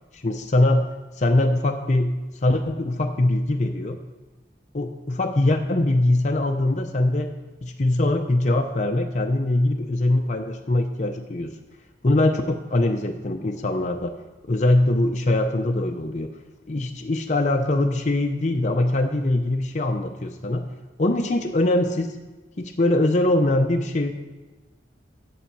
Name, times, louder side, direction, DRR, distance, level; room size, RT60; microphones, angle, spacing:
voice 1, 0.2-0.9 1.2-4.0 4.7-7.3 7.6-11.5 12.0-14.2 14.5-16.3 16.7-20.7 21.0-22.2 22.6-24.1, left 1 dB, 40° left, 4 dB, 0.6 m, -22 dB
8.8 x 7.5 x 6.8 m, 1.2 s
head